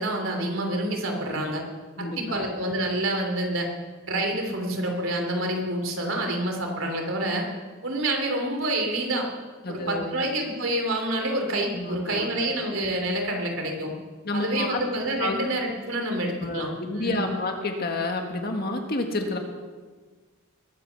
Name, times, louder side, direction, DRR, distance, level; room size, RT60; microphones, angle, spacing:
voice 1, 0.0-1.6 2.0-3.7 4.0-7.4 7.8-9.3 9.7-13.9 14.3-16.7 17.0-17.3, right 1 dB, 70° right, 2 dB, 3.3 m, -27 dB
voice 2, 2.0-2.4 9.6-10.2 11.7-12.3 14.3-14.8 15.2-15.4 16.4-19.4, left 2 dB, 45° left, 3 dB, 1.9 m, -29 dB
21.0 x 9.1 x 6.9 m, 1.4 s
head